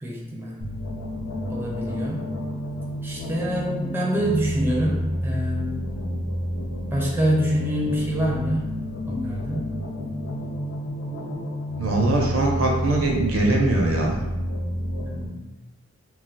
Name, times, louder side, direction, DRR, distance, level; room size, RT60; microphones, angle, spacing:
voice 1, 0.0-0.6 1.5-2.2 3.0-5.8 6.9-8.7 9.1-9.7 15.0-15.5, equal, 10° right, -4 dB, 0.4 m, -26 dB
sound 1, 0.6-15.3, equal, 75° left, 0.7 m, -30 dB
voice 2, 11.8-14.2, right 2 dB, 80° right, 0 dB, 0.7 m, -22 dB
2.4 x 2.3 x 3.9 m, 1.1 s
head